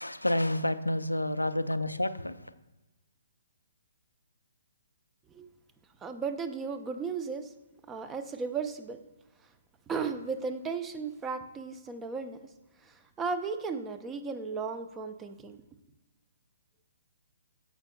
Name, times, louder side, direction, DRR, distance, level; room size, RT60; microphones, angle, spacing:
voice 1, 0.0-2.4, left 1 dB, 85° left, 0.4 m, -29 dB
voice 2, 6.0-7.5 7.9-9.0 9.9-12.4 12.8-15.6, right 5 dB, 15° right, 0.5 m, -35 dB
15.0 x 5.1 x 2.2 m
figure-of-eight pair, 130°, 0 cm